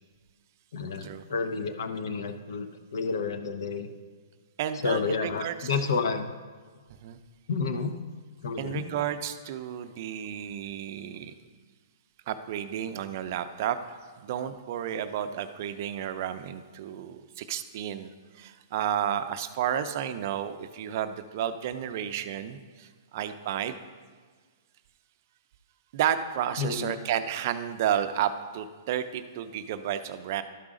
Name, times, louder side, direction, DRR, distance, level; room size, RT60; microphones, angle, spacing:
voice 1, 0.7-3.9 4.8-6.3 7.5-8.0 8.4-8.9 26.6-27.0, left 5 dB, 70° left, 8 dB, 0.8 m, -30 dB
voice 2, 4.6-5.7 7.0-7.2 8.6-11.3 12.3-18.1 18.4-23.8 25.9-30.4, right 10 dB, 45° right, 9 dB, 0.5 m, -32 dB
12.5 x 4.9 x 3.7 m, 1.5 s
hypercardioid pair, 155°, 2 cm